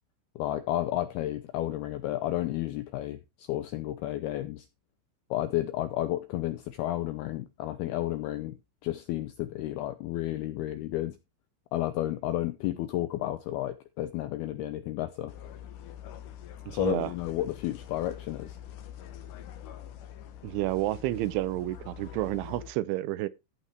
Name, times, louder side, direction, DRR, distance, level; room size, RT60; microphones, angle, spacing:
voice 1, 0.4-4.7 5.3-8.6 8.8-11.2 11.7-15.3 16.7-18.6, left 14 dB, 85° left, 2.2 m, -32 dB
sound 1, 15.3-22.7, left 10 dB, 70° left, 2.0 m, -45 dB
voice 2, 16.7-17.1 20.4-23.3, right 16 dB, 85° right, 3.1 m, -30 dB
14.5 x 5.6 x 4.5 m
omnidirectional pair, 5.3 m